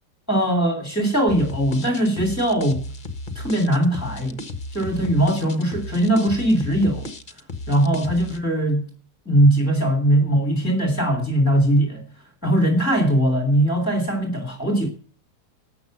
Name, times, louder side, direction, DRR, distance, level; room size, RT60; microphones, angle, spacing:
voice 1, 0.3-2.8 3.3-4.4 4.7-7.1 7.7-8.9 9.2-12.0 12.4-14.9, right 1 dB, 10° left, 4 dB, 3.2 m, -20 dB
sound 1, 1.3-8.4, left 2 dB, 30° left, 1.5 m, -34 dB
13.0 x 8.4 x 6.7 m, 0.41 s
omnidirectional pair, 1.8 m